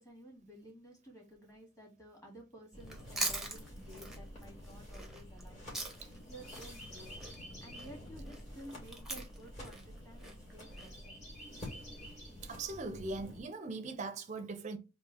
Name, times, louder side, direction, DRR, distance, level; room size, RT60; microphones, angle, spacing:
voice 1, 0.0-6.0 6.3-7.1 7.6-11.2, right 1 dB, 20° left, 2.0 m, -53 dB
sound 1, 2.7-13.4, left 1 dB, 35° left, 2.3 m, -49 dB
Chewing mastication, 2.8-6.2 6.5-10.9, right 2 dB, ahead, 0.8 m, -42 dB
voice 2, 12.4-14.8, right 3 dB, 35° right, 0.6 m, -40 dB
3.8 x 2.8 x 4.0 m
head